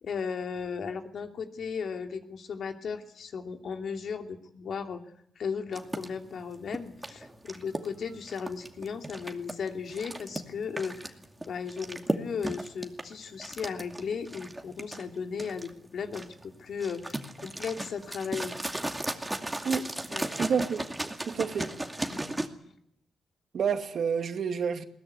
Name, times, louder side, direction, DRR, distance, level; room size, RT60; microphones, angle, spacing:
voice 1, 0.0-11.2 11.5-18.5 18.9-19.3 20.1-20.3 22.1-22.4, left 6 dB, 65° left, 5 dB, 2.8 m, -36 dB
sound 1, 5.7-22.5, right 1 dB, 10° right, 2.4 m, -36 dB
voice 2, 20.4-20.8 21.2-21.7 23.5-24.8, right 6 dB, 60° right, 7 dB, 2.3 m, -29 dB
21.0 x 19.0 x 9.7 m, 0.70 s
cardioid pair, 100°, 0 cm